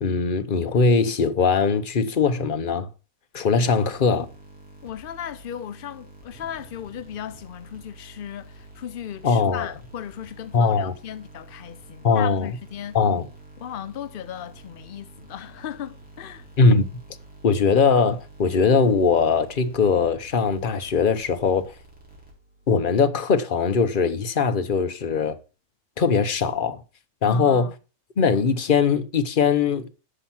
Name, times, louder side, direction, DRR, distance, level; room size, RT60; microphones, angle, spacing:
voice 1, 0.0-2.9 3.3-4.3 9.2-9.7 10.5-10.9 12.0-12.5 12.9-13.3 16.6-16.9 17.4-21.7 22.7-25.4 26.0-26.8 27.2-27.7 28.2-29.9, left 5 dB, 40° left, 0.9 m, -21 dB
sound 1, 3.9-22.7, right 2 dB, 5° right, 3.8 m, -48 dB
voice 2, 4.8-13.0 13.6-16.5 27.2-27.7, left 10 dB, 75° left, 0.5 m, -36 dB
10.0 x 5.9 x 5.8 m
omnidirectional pair, 1.6 m